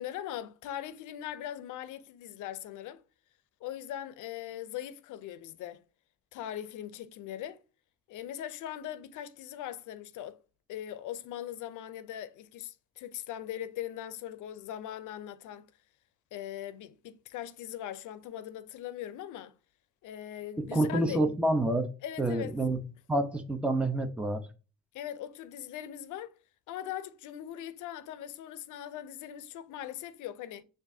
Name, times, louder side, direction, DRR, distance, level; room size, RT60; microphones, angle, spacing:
voice 1, 0.0-3.0 3.6-5.8 6.3-7.6 8.1-10.4 10.7-15.7 16.3-19.5 20.0-21.2 22.0-22.6 24.9-26.3 26.7-30.6, left 11 dB, 85° left, 0.6 m, -40 dB
voice 2, 20.6-21.9 22.2-22.8 23.1-24.4, right 1 dB, 5° right, 0.7 m, -28 dB
6.7 x 2.6 x 2.7 m
cardioid pair, 90°, 30 cm